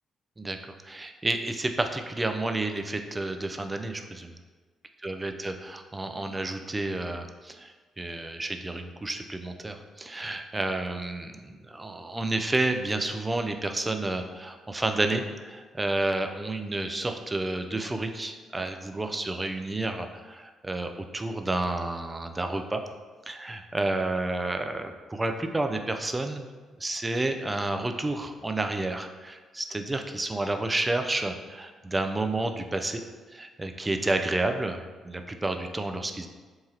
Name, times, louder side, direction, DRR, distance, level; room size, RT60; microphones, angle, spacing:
voice 1, 0.8-4.3 5.0-22.8 23.3-26.5 26.8-33.0 33.3-36.3, right 2 dB, 20° right, 6 dB, 0.3 m, -30 dB
3.1 x 2.3 x 2.8 m, 1.4 s
hypercardioid pair, 45°, 0 cm